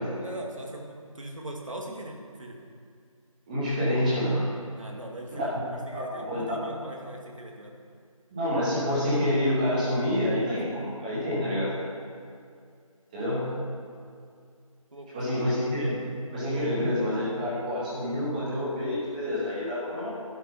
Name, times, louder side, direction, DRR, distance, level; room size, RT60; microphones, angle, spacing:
voice 1, 0.2-2.6 4.8-7.7 14.9-15.3, right 1 dB, 65° right, 1 dB, 2.3 m, -41 dB
voice 2, 3.5-4.5 5.3-5.5 5.9-6.6 8.3-11.7 13.1-13.5 15.1-16.0 16.3-20.1, left 1 dB, 15° right, -9 dB, 2.8 m, -27 dB
12.0 x 9.3 x 5.7 m, 2.3 s
figure-of-eight pair, 165°, 18 cm